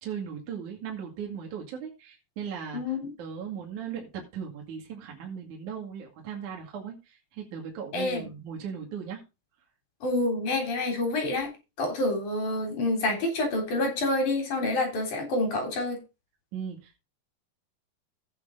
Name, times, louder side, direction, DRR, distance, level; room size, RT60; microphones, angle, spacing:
voice 1, 0.0-9.2 16.5-17.0, right 7 dB, 50° right, 0 dB, 3.3 m, -38 dB
voice 2, 2.7-3.1 7.9-8.3 10.0-11.5 11.8-16.0, left 2 dB, 50° left, 3 dB, 4.7 m, -27 dB
14.5 x 9.6 x 2.6 m, 0.27 s
omnidirectional pair, 4.8 m